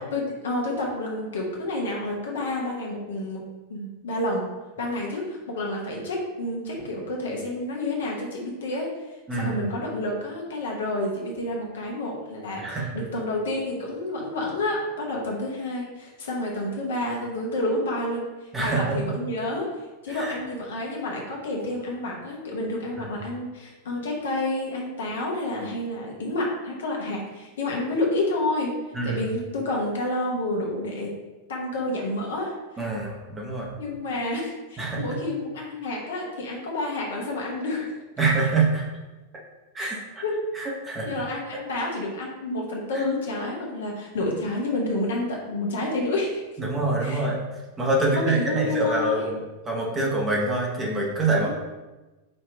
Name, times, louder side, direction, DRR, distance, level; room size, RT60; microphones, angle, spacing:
voice 1, 0.1-3.4 3.7-4.5 4.8-8.9 9.3-19.7 20.0-28.7 29.0-31.1 31.5-32.5 33.8-38.0 39.8-39.9 40.2-40.4 41.0-46.4 47.0-47.3 48.0-49.3 51.3-51.5, left 2 dB, 60° left, -1 dB, 1.1 m, -29 dB
voice 2, 18.5-19.0 20.1-20.3 23.0-23.1 28.9-29.3 32.8-33.7 34.8-35.0 38.2-38.9 39.7-40.0 40.5-41.1 46.6-47.4 47.8-49.4 49.7-51.5, right 2 dB, 15° right, -2 dB, 1.0 m, -25 dB
5.3 x 2.9 x 3.4 m, 1.1 s
figure-of-eight pair, 90°, 0 cm